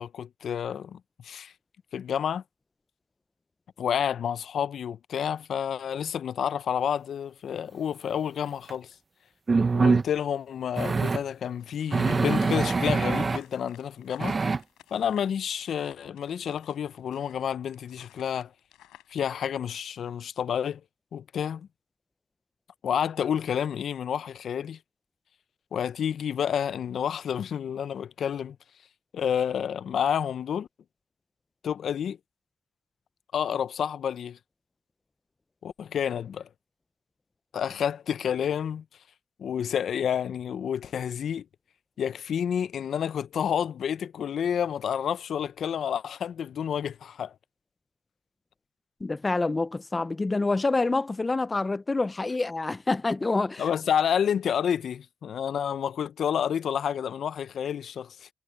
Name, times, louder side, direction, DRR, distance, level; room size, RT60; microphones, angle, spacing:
voice 1, 0.0-1.5 1.9-2.4 3.8-8.9 9.7-14.4 14.9-18.5 19.1-20.8 21.1-21.7 22.8-24.8 25.7-28.6 29.1-30.7 31.6-32.2 33.3-34.4 35.6-36.5 37.5-38.8 39.4-41.5 42.0-47.3 53.6-58.3, left 8 dB, 60° left, 0.6 m, -29 dB
sound 1, 8.7-8.8 9.5-10.1 10.8-11.2 11.9-13.4 14.2-14.6, right 4 dB, 30° right, 0.8 m, -24 dB
sound 2, 11.4-19.2, left 14 dB, 85° left, 6.1 m, -56 dB
voice 2, 49.0-53.6, left 3 dB, 20° left, 0.6 m, -27 dB
cardioid pair, 90°, 0 cm